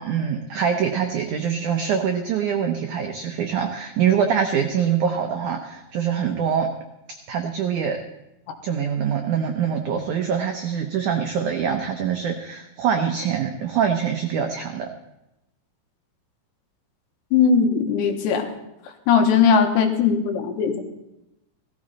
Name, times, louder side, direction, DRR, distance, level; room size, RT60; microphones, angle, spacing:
voice 1, 0.1-6.7 7.3-8.0 8.6-14.9, right 7 dB, 85° right, 4 dB, 1.7 m, -24 dB
voice 2, 17.3-18.5 19.1-20.8, left 6 dB, 85° left, 4 dB, 3.6 m, -19 dB
16.5 x 14.0 x 4.2 m, 0.89 s
omnidirectional pair, 4.9 m